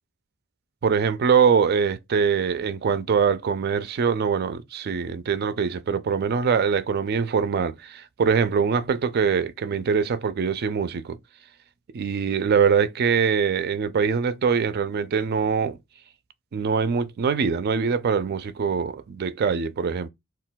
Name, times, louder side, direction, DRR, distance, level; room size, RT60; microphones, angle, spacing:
voice 1, 0.8-11.2 11.9-15.8 16.5-20.1, right 6 dB, 50° right, 0.3 m, -23 dB
2.2 x 2.2 x 3.9 m
head